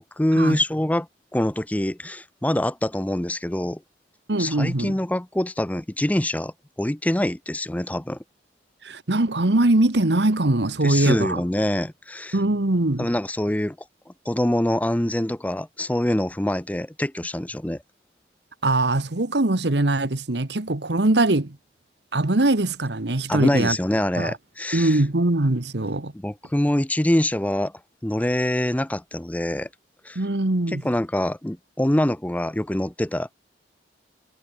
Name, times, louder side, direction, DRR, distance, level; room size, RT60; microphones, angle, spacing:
voice 1, 0.0-3.8 4.4-8.2 10.8-12.4 13.0-13.8 14.1-17.8 23.3-25.0 26.1-27.7 28.0-29.7 30.0-30.2 30.7-33.3, left 1 dB, 10° left, 0.5 m, -25 dB
voice 2, 4.3-5.0 8.8-11.4 12.3-13.1 18.6-21.6 22.1-23.8 24.2-24.3 24.7-26.1 30.1-30.8, right 2 dB, 75° right, 1.5 m, -22 dB
head